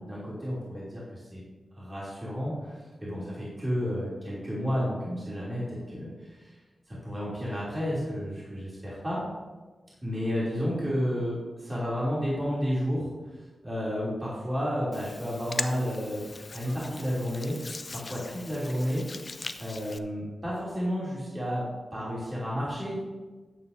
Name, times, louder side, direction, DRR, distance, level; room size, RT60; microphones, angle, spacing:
voice 1, 0.0-1.4 1.8-6.5 6.9-9.2 10.0-13.1 13.6-16.2 16.5-17.6 17.9-19.1 19.6-21.6 21.9-23.0, equal, 25° right, -8 dB, 3.0 m, -31 dB
Hands, 14.9-20.0, left 3 dB, 40° left, 0.5 m, -40 dB
13.5 x 9.5 x 2.7 m, 1.3 s
wide cardioid pair, 125°, 0 cm